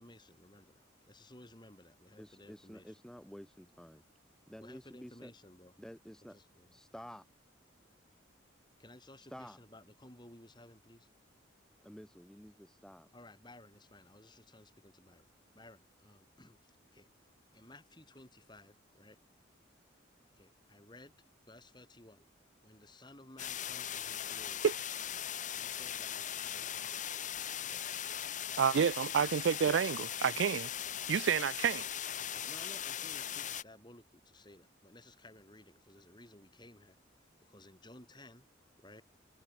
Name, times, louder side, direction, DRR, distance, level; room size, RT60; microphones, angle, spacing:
voice 1, 0.0-2.9 4.6-5.7 6.3-6.8 8.8-11.1 13.1-15.3 15.5-19.2 20.3-21.1 21.5-22.2 22.6-24.7 25.5-28.1 28.5-28.6 32.2-38.5 38.8-39.0, left 1 dB, 25° left, 4.7 m, -57 dB
voice 2, 2.2-4.0 4.5-5.3 5.8-6.4 6.7-7.3 9.3-9.6 11.8-13.1, equal, 5° left, 1.3 m, -51 dB
sound 1, 23.4-33.6, left 10 dB, 40° left, 1.1 m, -39 dB
voice 3, 28.6-30.7 31.1-31.8, right 7 dB, 70° right, 0.4 m, -29 dB
head